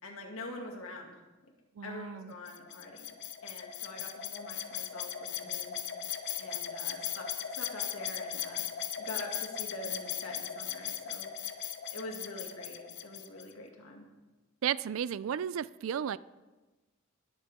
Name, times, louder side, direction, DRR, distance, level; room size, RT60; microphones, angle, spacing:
voice 1, 0.0-1.1 1.8-3.1 3.4-5.8 6.4-8.6 9.0-11.3 11.9-14.0, left 2 dB, 80° left, 1 dB, 2.1 m, -45 dB
voice 2, 1.8-2.3 14.6-16.2, right 8 dB, 65° right, 18 dB, 0.3 m, -34 dB
sound 1, 2.5-13.5, left 9 dB, 55° left, 0.8 m, -38 dB
20.5 x 7.7 x 3.6 m, 1.2 s
head